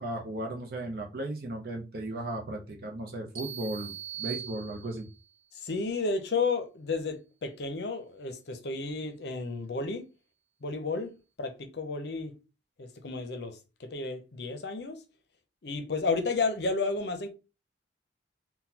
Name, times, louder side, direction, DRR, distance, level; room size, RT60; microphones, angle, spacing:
voice 1, 0.0-5.1, right 1 dB, 55° right, 0.6 m, -36 dB
sound 1, 3.3-5.3, right 10 dB, 85° right, 1.0 m, -40 dB
voice 2, 5.5-10.1 10.6-12.3 12.8-15.0 15.6-17.3, left 4 dB, 60° left, 0.6 m, -32 dB
3.9 x 2.2 x 2.8 m
head